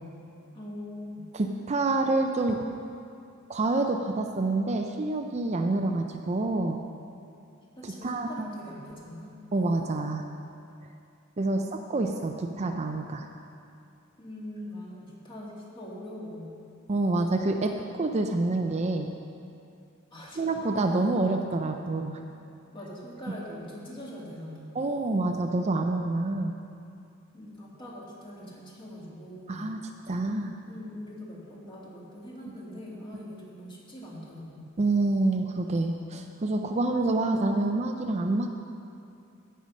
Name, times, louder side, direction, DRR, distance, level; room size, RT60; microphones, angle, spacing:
voice 1, 0.5-1.3 7.8-9.3 11.5-12.3 14.2-16.5 20.1-20.5 22.7-24.7 27.3-29.7 30.7-34.7, left 1 dB, 25° left, -4 dB, 2.3 m, -42 dB
voice 2, 1.3-2.6 3.5-6.8 7.8-8.6 9.5-10.3 11.4-13.3 16.9-19.1 20.4-22.2 24.7-26.5 29.5-29.8 30.1-30.6 34.8-38.5, right 2 dB, 30° right, 4 dB, 0.5 m, -27 dB
16.5 x 5.7 x 6.3 m, 2.5 s
head